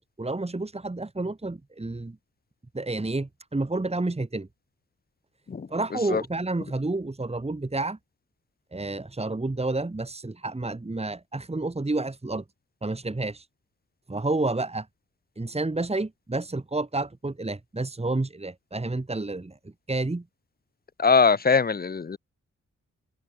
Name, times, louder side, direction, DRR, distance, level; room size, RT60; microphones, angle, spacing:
voice 1, 0.0-2.2 2.7-4.5 5.7-8.0 8.7-12.4 12.8-13.4 14.1-14.9 15.4-19.6 19.9-20.2, right 2 dB, 20° right, 2.5 m, -30 dB
voice 2, 21.0-22.2, left 5 dB, 30° left, 0.8 m, -21 dB
cardioid pair, 65°, 31 cm